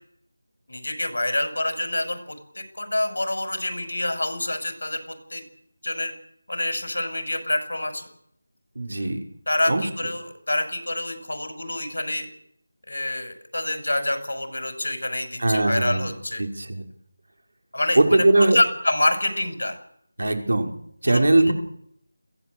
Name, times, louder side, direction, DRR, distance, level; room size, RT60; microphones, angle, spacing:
voice 1, 0.7-5.4 5.8-6.1 6.5-8.1 9.5-12.3 12.9-16.4 17.7-19.8 21.0-21.5, left 1 dB, 90° left, 8 dB, 6.4 m, -27 dB
voice 2, 8.8-9.2 9.7-9.9 15.4-16.1 16.4-16.8 17.9-18.6 20.2-20.7 21.0-21.5, right 2 dB, 75° right, 4 dB, 5.7 m, -20 dB
22.0 x 16.5 x 8.1 m, 0.67 s
figure-of-eight pair, 180°, 0 cm